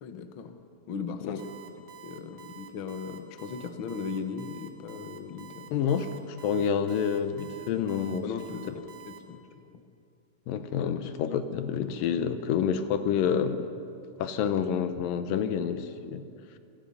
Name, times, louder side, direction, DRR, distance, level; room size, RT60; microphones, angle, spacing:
voice 1, 0.0-0.6 0.9-1.7 2.0-5.7 8.2-9.4 10.8-10.9, left 5 dB, 60° left, 7 dB, 1.3 m, -38 dB
Alarm, 1.4-9.2, right 11 dB, 80° right, 3.1 m, -48 dB
voice 2, 5.7-8.3 10.5-13.7 14.2-16.2, left 7 dB, 80° left, 10 dB, 2.6 m, -28 dB
28.0 x 18.0 x 5.6 m, 2.5 s
omnidirectional pair, 4.1 m